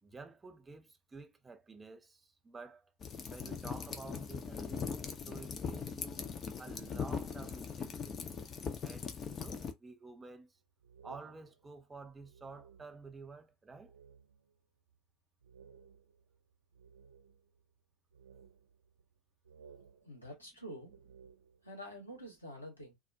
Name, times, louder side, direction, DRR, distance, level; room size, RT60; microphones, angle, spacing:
voice 1, 0.0-2.9 3.3-6.2 6.6-8.4 8.8-10.6 11.0-13.9, right 4 dB, 20° right, 0.6 m, -51 dB
sound 1, 3.0-9.7, left 6 dB, 30° left, 0.5 m, -40 dB
sound 2, 10.8-13.3 13.7-14.6 14.9-15.0 15.4-17.6 18.1-19.2 19.4-21.8, right 6 dB, 75° right, 0.6 m, -59 dB
voice 2, 20.0-20.9 21.6-22.9, equal, 85° left, 0.9 m, -47 dB
2.2 x 2.1 x 2.7 m
figure-of-eight pair, 70°, 0 cm